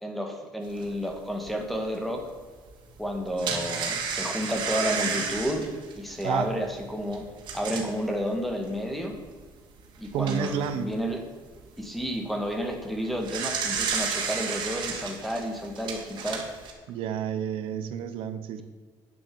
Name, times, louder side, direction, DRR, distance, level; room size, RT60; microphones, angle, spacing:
voice 1, 0.0-2.3 3.0-7.2 7.5-9.2 10.0-11.2 11.8-16.5, equal, ahead, 3 dB, 1.7 m, -31 dB
sound 1, 0.8-0.9 1.5-1.6 3.0-8.0 8.7-8.8 9.1-9.2 9.9-10.7 12.9-16.7, right 5 dB, 60° right, 2.4 m, -32 dB
voice 2, 10.1-10.9 16.9-18.6, right 8 dB, 85° right, 10 dB, 0.9 m, -30 dB
9.7 x 7.6 x 7.0 m, 1.5 s
cardioid pair, 150°, 9 cm